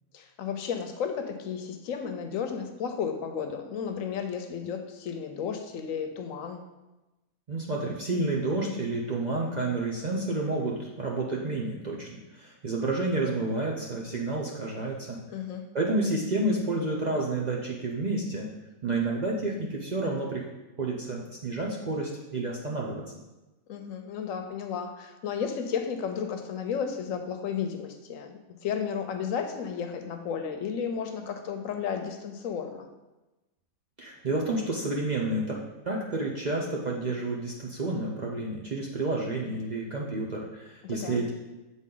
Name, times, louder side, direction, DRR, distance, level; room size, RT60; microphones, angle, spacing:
voice 1, 0.1-6.6 15.3-15.6 23.7-32.9 40.8-41.2, left 7 dB, 75° left, 6 dB, 1.0 m, -33 dB
voice 2, 7.5-12.1 12.3-15.2 15.7-18.4 18.8-20.4 20.8-23.0 34.0-35.6 35.8-41.3, right 2 dB, 45° right, -2 dB, 0.6 m, -30 dB
7.3 x 4.0 x 3.7 m, 1.1 s
omnidirectional pair, 1.4 m